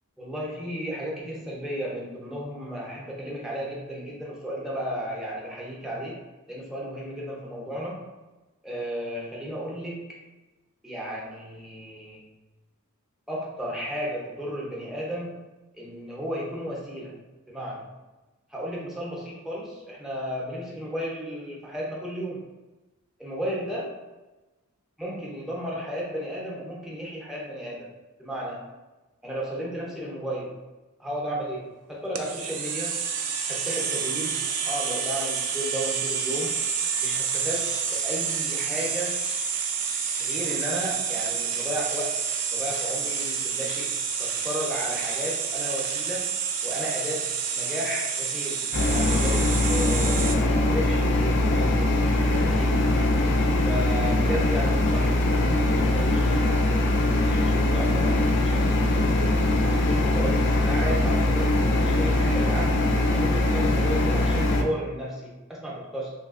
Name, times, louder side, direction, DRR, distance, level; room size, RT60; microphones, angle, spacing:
voice 1, 0.2-6.2 6.5-8.1 8.6-10.1 10.8-12.2 13.3-15.4 15.7-17.9 18.5-22.5 23.2-23.9 25.0-27.9 28.2-28.6 29.2-30.6 31.0-33.0 33.5-36.6 37.0-39.2 40.2-42.2 42.5-43.9 44.2-46.4 46.6-52.9 53.6-59.2 59.6-62.8 63.1-66.1, equal, ahead, -4 dB, 0.5 m, -34 dB
sound 1, 32.2-50.4, right 6 dB, 90° right, 0.4 m, -29 dB
sound 2, 48.7-64.6, left 1 dB, 50° left, 0.4 m, -22 dB
3.1 x 2.7 x 2.5 m, 1.1 s
head